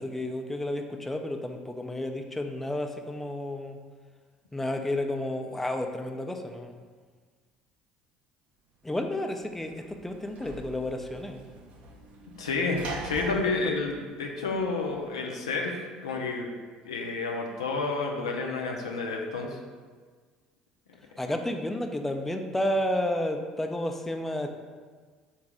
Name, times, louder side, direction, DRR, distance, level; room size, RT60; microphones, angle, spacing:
voice 1, 0.0-3.8 4.5-6.7 8.8-11.5 13.3-13.7 21.2-24.5, left 1 dB, 10° left, 4 dB, 0.5 m, -31 dB
Sliding door / Slam, 9.1-14.9, right 2 dB, 55° right, 0.5 m, -43 dB
voice 2, 12.4-16.5 16.8-19.6, left 3 dB, 80° left, 1 dB, 0.5 m, -30 dB
3.9 x 2.7 x 4.6 m, 1.5 s
figure-of-eight pair, 60°, 3 cm